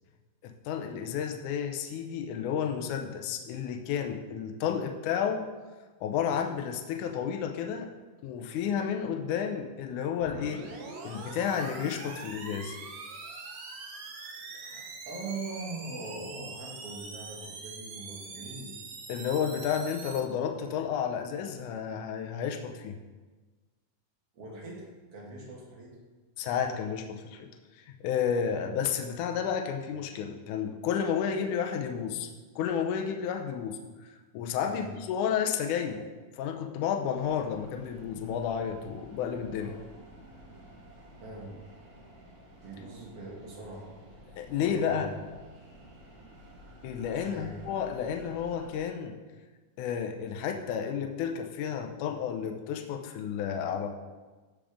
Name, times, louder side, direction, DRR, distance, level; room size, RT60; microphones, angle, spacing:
voice 1, 0.4-5.5 6.0-7.9 8.2-10.6 11.0-12.8 19.1-23.0 26.4-27.5 27.8-32.3 32.6-33.8 34.3-36.1 36.3-39.7 44.4-45.1 46.8-49.2 49.8-53.9, left 7 dB, 80° left, 3 dB, 1.8 m, -31 dB
sound 1, 10.2-20.2, right 4 dB, 70° right, 1.6 m, -43 dB
voice 2, 14.5-18.8 24.3-26.0 34.6-34.9 39.6-39.8 41.2-41.6 42.6-43.9 44.6-45.1 47.1-47.5, right 2 dB, 50° right, -3 dB, 2.2 m, -42 dB
sound 2, 37.1-48.8, right 1 dB, 30° right, 1.9 m, -52 dB
15.5 x 5.1 x 3.6 m, 1.3 s
omnidirectional pair, 4.5 m